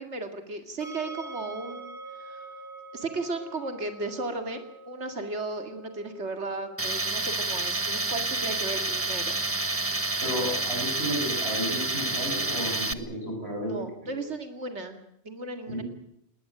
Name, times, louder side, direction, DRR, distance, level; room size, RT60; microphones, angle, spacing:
voice 1, 0.0-2.5 2.9-9.4 13.6-15.0 15.2-15.8, right 2 dB, 85° right, 7 dB, 2.6 m, -35 dB
sound 1, 0.8-13.8, right 3 dB, 25° left, 7.7 m, -47 dB
Tools, 6.8-12.9, right 2 dB, 15° right, 0.9 m, -29 dB
voice 2, 10.2-14.1 15.7-15.8, equal, 65° right, 2 dB, 7.6 m, -33 dB
19.5 x 19.5 x 8.7 m, 0.73 s
omnidirectional pair, 1.1 m